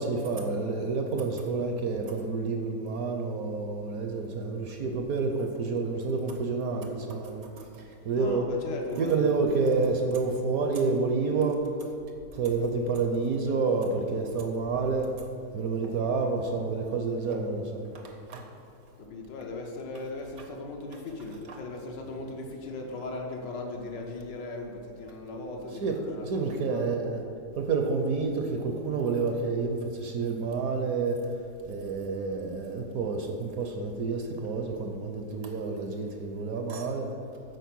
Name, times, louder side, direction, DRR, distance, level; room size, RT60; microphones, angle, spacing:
voice 1, 0.0-8.4 9.0-11.9 12.3-15.3 15.5-18.5 21.5-21.6 25.8-27.2 27.6-31.2 31.7-37.1, right 4 dB, 65° right, 3 dB, 1.0 m, -29 dB
voice 2, 8.1-9.3 19.0-26.9, left 2 dB, 80° left, 1 dB, 1.6 m, -38 dB
8.1 x 4.3 x 6.1 m, 2.5 s
omnidirectional pair, 1.9 m